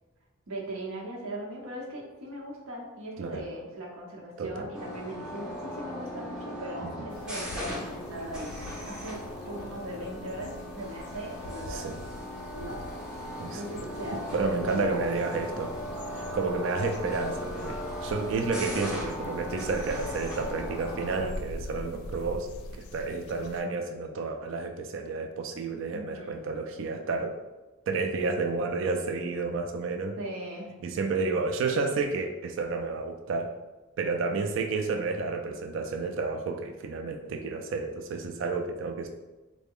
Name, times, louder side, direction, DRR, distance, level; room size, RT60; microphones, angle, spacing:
voice 1, 0.5-11.9 12.5-12.8 13.5-15.1 25.9-26.4 30.2-30.7, right 1 dB, 85° right, -2 dB, 0.8 m, -39 dB
voice 2, 4.4-4.7 6.8-6.9 11.7-12.0 13.4-13.6 14.3-15.8 16.1-22.5 22.8-27.4 27.9-30.2 30.8-33.5 34.0-39.1, right 3 dB, 60° right, 5 dB, 0.3 m, -31 dB
sound 1, 4.7-21.2, equal, 5° right, 0.5 m, -38 dB
sound 2, 7.1-23.6, left 2 dB, 85° left, 0.3 m, -44 dB
3.2 x 2.1 x 3.5 m, 1.1 s
head